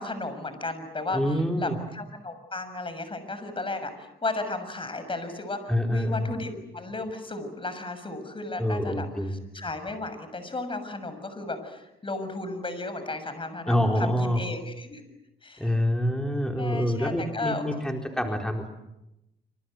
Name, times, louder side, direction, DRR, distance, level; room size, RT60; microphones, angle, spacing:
voice 1, 0.0-15.0 15.4-15.7 16.6-17.6, left 2 dB, 25° left, 10 dB, 6.8 m, -34 dB
voice 2, 1.1-1.8 5.7-6.3 8.5-9.4 13.7-14.4 15.6-18.7, equal, 5° left, 2 dB, 4.3 m, -26 dB
27.0 x 26.5 x 7.9 m, 0.89 s
cardioid pair, 90°, 20 cm